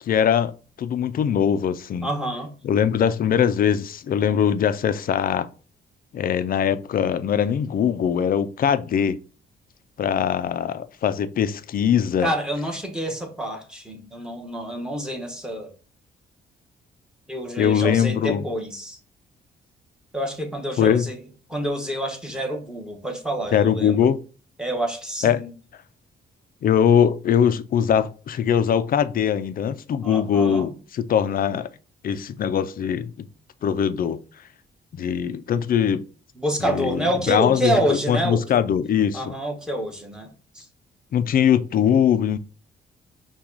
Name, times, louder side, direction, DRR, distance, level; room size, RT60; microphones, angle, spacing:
voice 1, 0.0-0.5 0.8-2.1 2.6-5.5 6.1-9.2 10.0-12.3 17.6-18.4 20.8-21.1 23.5-24.2 25.2-25.4 26.6-31.7 32.0-33.3 33.6-34.2 34.9-36.1 36.6-37.8 38.1-39.3 41.1-42.4, left 8 dB, 50° left, 0.4 m, -21 dB
voice 2, 2.0-2.5 12.2-15.7 17.3-19.0 20.1-21.2 21.5-24.1 24.6-25.5 30.0-30.8 36.4-38.4 39.1-40.7, right 1 dB, 5° right, 1.1 m, -27 dB
5.7 x 2.3 x 3.9 m
cardioid pair, 100°, 19 cm